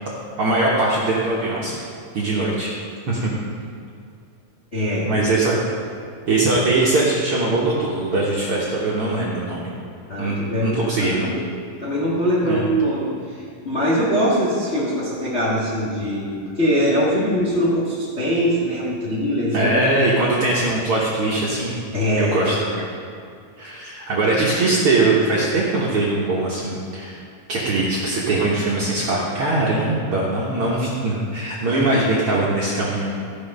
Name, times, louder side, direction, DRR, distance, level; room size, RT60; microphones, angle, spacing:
voice 1, 0.4-1.8 2.1-2.7 3.1-3.3 5.0-5.6 6.3-9.7 10.2-11.3 12.4-12.7 19.5-21.8 22.2-22.9 23.6-27.2 27.5-33.1, right 2 dB, 55° right, -5 dB, 1.6 m, -21 dB
voice 2, 4.7-5.3 10.1-11.5 11.8-19.8 21.9-22.6, equal, 35° left, -6 dB, 1.0 m, -22 dB
13.5 x 6.3 x 5.4 m, 2.4 s
omnidirectional pair, 4.0 m